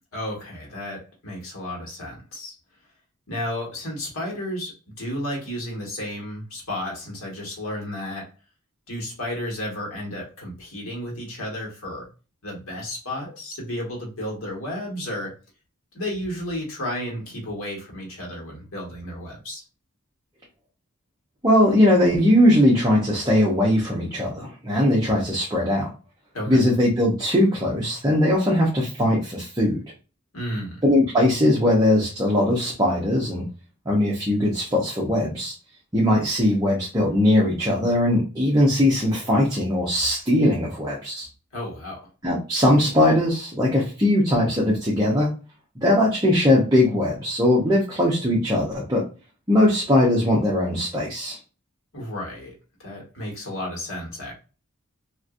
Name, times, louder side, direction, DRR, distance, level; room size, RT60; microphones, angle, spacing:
voice 1, 0.1-2.5 3.3-8.3 8.9-12.1 12.4-15.4 15.9-19.6 26.3-26.6 30.3-30.8 41.5-42.1 51.9-52.5 52.8-54.3, left 1 dB, 70° left, -2 dB, 1.4 m, -32 dB
voice 2, 21.4-25.9 26.5-29.8 30.8-33.4 33.9-35.5 35.9-41.3 42.2-45.3 45.8-49.0 49.5-51.4, left 1 dB, 15° right, -5 dB, 0.7 m, -20 dB
2.9 x 2.5 x 2.4 m, 0.33 s
head